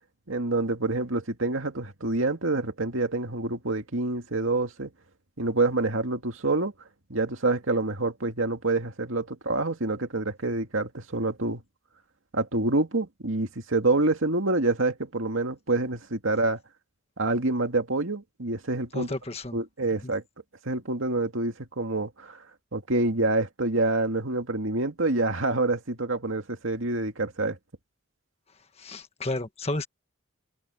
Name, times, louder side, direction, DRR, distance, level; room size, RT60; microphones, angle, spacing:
voice 1, 0.3-4.9 5.4-6.7 7.1-11.6 12.3-16.6 17.2-19.1 19.5-20.2 20.7-22.4 22.7-27.6, right 2 dB, 80° right, 2.3 m, -27 dB
voice 2, 18.9-19.6 20.0-20.1 28.8-29.9, left 2 dB, 30° left, 1.5 m, -32 dB
head